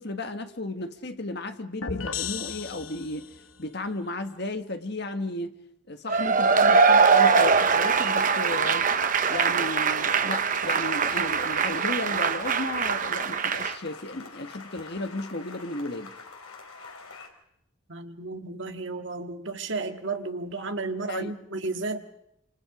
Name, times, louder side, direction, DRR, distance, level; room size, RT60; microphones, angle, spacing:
voice 1, 0.0-3.3 3.6-5.5 5.9-8.9 9.3-16.1 21.1-21.3, left 2 dB, 50° left, 1.6 m, -34 dB
sound 1, 1.8-3.5, left 6 dB, 65° left, 1.1 m, -34 dB
Cheering / Applause / Crowd, 6.1-13.7, right 5 dB, 40° right, 0.8 m, -22 dB
sound 2, 7.1-17.3, left 4 dB, 85° left, 3.9 m, -45 dB
voice 2, 17.9-22.0, right 3 dB, 55° right, 1.8 m, -33 dB
27.0 x 26.5 x 5.0 m
head